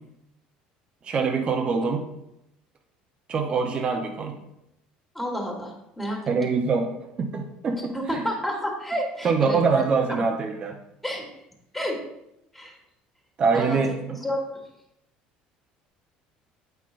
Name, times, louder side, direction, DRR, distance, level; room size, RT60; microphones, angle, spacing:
voice 1, 1.0-2.0 3.3-4.4 6.3-6.9 7.2-8.3 9.2-10.8 13.4-14.2, right 5 dB, 35° right, 2 dB, 0.7 m, -24 dB
voice 2, 5.1-6.2 7.9-9.8 10.1-10.2 11.0-11.3 11.7-12.0 12.5-12.8 13.5-13.8 14.2-14.6, equal, 5° left, 0 dB, 1.6 m, -30 dB
7.9 x 5.7 x 2.5 m, 0.84 s
cardioid pair, 115°, 3 cm